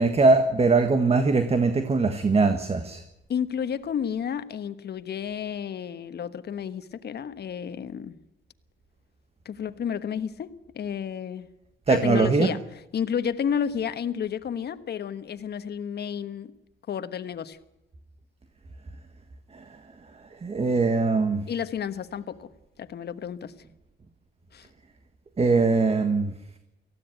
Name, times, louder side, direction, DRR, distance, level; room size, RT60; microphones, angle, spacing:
voice 1, 0.0-3.0 11.9-12.5 19.5-19.6 20.4-21.5 25.4-26.3, right 3 dB, 30° right, 1.6 m, -21 dB
voice 2, 3.3-8.2 9.4-11.5 11.9-16.6 16.9-17.6 21.5-23.5 24.5-24.7, left 8 dB, 55° left, 1.3 m, -31 dB
18.5 x 15.5 x 9.2 m
cardioid pair, 90°, 20 cm